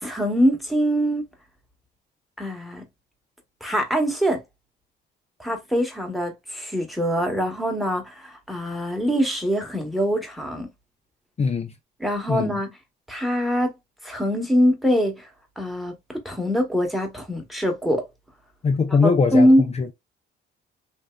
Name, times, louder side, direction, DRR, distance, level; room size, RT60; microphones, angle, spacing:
voice 1, 0.0-1.2 2.4-2.8 3.6-4.4 5.4-10.7 12.0-12.8 13.1-13.7 14.0-15.3 15.6-18.0 19.0-19.6, equal, ahead, 1.1 m, -23 dB
voice 2, 11.4-11.7 12.3-12.6 18.6-19.5 19.8-19.9, left 5 dB, 30° left, 0.5 m, -21 dB
3.5 x 2.7 x 2.3 m
cardioid pair, 90°, 20 cm